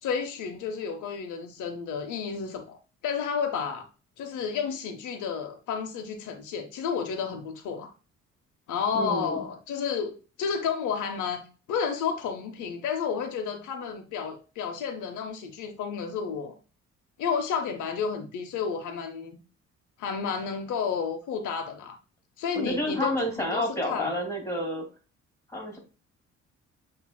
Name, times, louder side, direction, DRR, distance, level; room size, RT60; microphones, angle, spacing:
voice 1, 0.0-3.9 4.2-7.9 8.7-11.4 11.7-16.5 17.2-19.4 20.0-22.0 22.4-24.1, left 6 dB, 80° left, 0.7 m, -31 dB
voice 2, 8.9-9.4 22.6-24.9 25.5-25.8, equal, 10° left, 1.9 m, -29 dB
7.2 x 2.7 x 2.2 m
cardioid pair, 90°, 30 cm